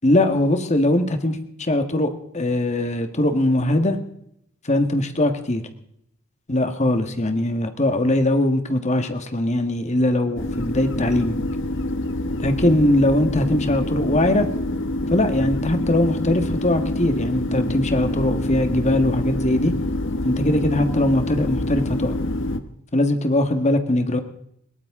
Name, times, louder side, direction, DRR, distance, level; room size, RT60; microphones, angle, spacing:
voice 1, 0.0-4.0 4.6-5.6 6.5-11.4 12.4-14.5 15.1-19.7 20.2-22.1 22.9-24.2, left 1 dB, 30° left, 8 dB, 1.5 m, -21 dB
sound 1, 10.4-22.6, left 1 dB, 60° left, 1.2 m, -26 dB
21.0 x 18.0 x 3.7 m, 0.74 s
head